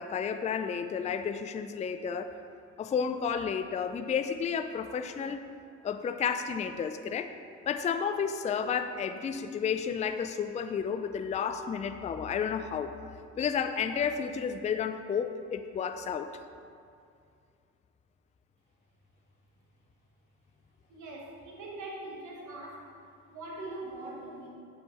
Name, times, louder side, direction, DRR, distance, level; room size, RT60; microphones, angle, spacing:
voice 1, 0.0-2.3 2.8-5.4 5.8-7.3 7.7-13.0 13.4-16.3, left 7 dB, 25° left, 8 dB, 0.3 m, -31 dB
voice 2, 20.9-22.9 23.3-24.5, right 2 dB, 75° right, -3 dB, 1.4 m, -42 dB
7.5 x 5.2 x 4.7 m, 2.3 s
cardioid pair, 90°, 30 cm